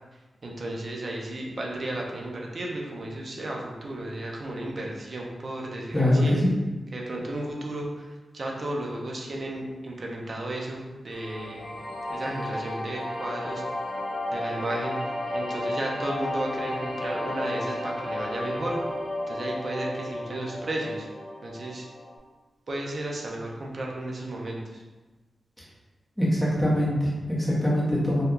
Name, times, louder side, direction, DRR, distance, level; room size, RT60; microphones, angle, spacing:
voice 1, 0.4-6.4 6.9-8.1 8.3-11.7 12.1-13.6 14.3-18.8 19.3-21.1 21.4-21.9 22.7-24.8, right 1 dB, 40° right, -1 dB, 0.5 m, -34 dB
voice 2, 5.9-6.5 26.2-28.2, left 1 dB, ahead, -7 dB, 0.8 m, -23 dB
sound 1, 11.1-22.2, left 1 dB, 35° left, 0.6 m, -33 dB
2.7 x 2.2 x 3.6 m, 1.2 s
wide cardioid pair, 175°, 0 cm